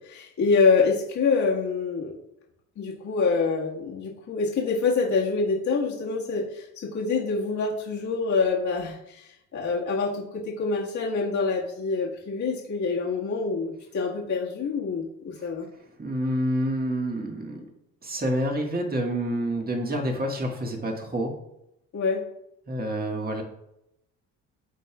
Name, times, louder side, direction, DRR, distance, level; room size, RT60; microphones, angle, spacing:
voice 1, 0.0-2.2 2.8-15.7 21.9-22.2, left 4 dB, 50° left, -4 dB, 1.8 m, -26 dB
voice 2, 16.0-17.6 18.0-21.3 22.7-23.4, equal, 25° right, 2 dB, 1.6 m, -28 dB
11.5 x 4.2 x 2.3 m, 0.83 s
hypercardioid pair, 60°, 36 cm